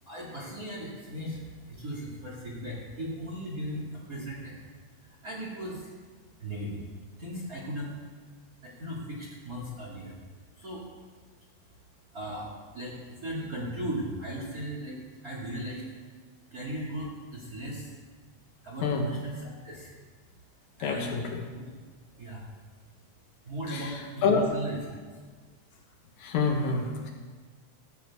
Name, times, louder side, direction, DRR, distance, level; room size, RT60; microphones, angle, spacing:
voice 1, 0.0-4.6 5.0-5.9 6.4-6.8 7.2-8.0 8.6-10.2 10.5-10.8 11.3-11.7 12.1-15.8 16.5-17.9 18.6-19.9 20.2-21.3 21.5-21.7 22.2-22.4 23.4-25.2, equal, 30° right, -4 dB, 1.8 m, -37 dB
voice 2, 20.8-21.4 23.7-24.4 26.2-27.1, left 4 dB, 80° left, 2 dB, 3.0 m, -27 dB
15.0 x 7.9 x 4.6 m, 1.5 s
omnidirectional pair, 4.1 m